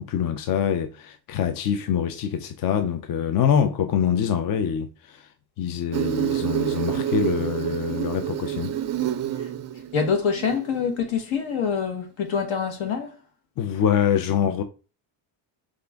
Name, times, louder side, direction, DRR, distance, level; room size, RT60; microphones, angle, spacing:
voice 1, 0.0-5.2 5.6-8.8 13.6-14.6, left 8 dB, 45° left, 0.5 m, -25 dB
Insect, 5.9-10.9, right 11 dB, 35° right, 0.4 m, -28 dB
voice 2, 9.9-13.1, left 6 dB, 65° left, 1.3 m, -25 dB
4.9 x 2.5 x 3.4 m
cardioid pair, 110°, 50 cm